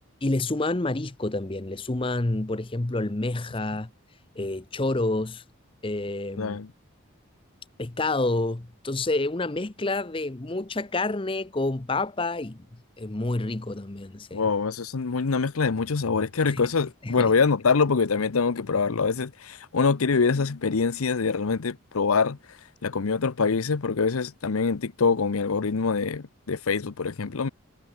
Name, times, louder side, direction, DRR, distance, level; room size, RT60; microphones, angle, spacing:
voice 1, 0.2-3.9 4.4-5.4 5.8-6.6 7.8-12.7 13.0-14.4 16.5-16.6 17.0-17.3, left 2 dB, 25° left, 0.7 m, -28 dB
voice 2, 6.4-6.7 14.3-22.4 22.8-27.5, left 5 dB, 90° left, 0.7 m, -24 dB
head